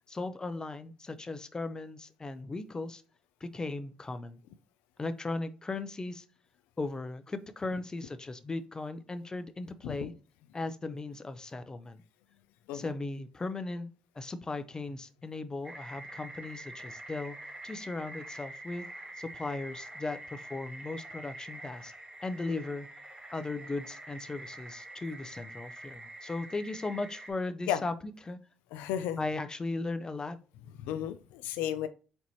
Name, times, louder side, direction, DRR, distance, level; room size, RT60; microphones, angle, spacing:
voice 1, 0.1-3.0 3.4-4.4 5.0-6.2 6.8-10.1 10.5-12.0 12.7-13.9 14.1-17.4 17.6-18.9 19.2-21.9 22.2-22.9 23.3-27.9 28.3-28.4 29.2-30.4, left 3 dB, 25° left, 0.7 m, -37 dB
sound 1, 15.6-27.3, right 1 dB, 35° right, 1.9 m, -46 dB
voice 2, 28.7-29.2 30.8-31.9, left 10 dB, 85° left, 0.3 m, -33 dB
4.6 x 4.1 x 2.8 m
supercardioid pair, 60°, 3 cm